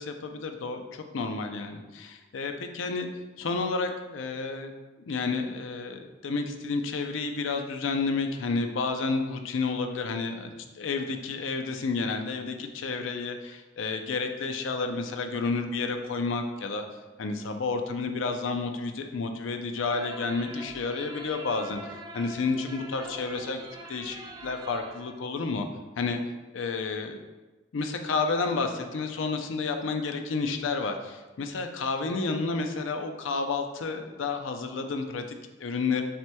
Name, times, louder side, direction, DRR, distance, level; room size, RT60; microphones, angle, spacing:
voice 1, 0.0-3.1 3.4-4.7 5.1-16.8 17.2-23.6 23.9-25.7 26.0-26.2 26.5-27.2 27.7-36.0, left 4 dB, 85° left, 6 dB, 0.5 m, -30 dB
sound 1, 19.8-25.1, right 2 dB, 20° right, 0.4 m, -44 dB
7.5 x 2.9 x 2.2 m, 1.2 s
head